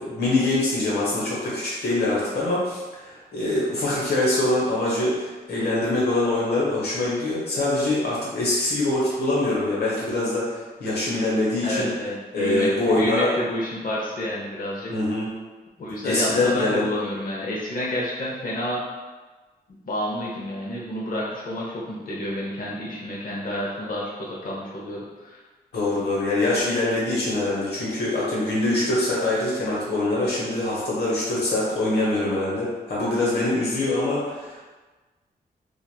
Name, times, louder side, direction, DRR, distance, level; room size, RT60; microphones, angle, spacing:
voice 1, 0.0-11.9 12.3-13.3 14.9-15.3 16.0-16.8 25.7-34.6, left 2 dB, 80° left, -6 dB, 1.1 m, -24 dB
voice 2, 11.6-14.9 15.8-18.8 19.9-25.4, equal, 55° left, -4 dB, 0.7 m, -29 dB
3.0 x 2.4 x 2.2 m, 1.2 s
cardioid pair, 90°, 17 cm